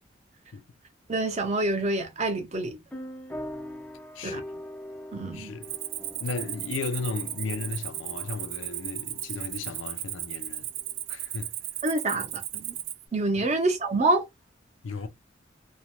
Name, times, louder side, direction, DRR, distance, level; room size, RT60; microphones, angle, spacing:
voice 1, 1.1-2.8 4.2-4.4 5.1-5.5 11.8-12.8 13.1-14.3, right 2 dB, 35° right, 0.7 m, -27 dB
sound 1, 2.9-11.0, left 1 dB, 5° left, 0.4 m, -43 dB
voice 2, 5.3-5.8 6.2-10.7 11.1-11.5 13.4-13.5 14.8-15.1, left 4 dB, 80° left, 0.4 m, -35 dB
Cricket, 5.6-13.0, right 13 dB, 75° right, 0.3 m, -36 dB
2.4 x 2.1 x 3.0 m
head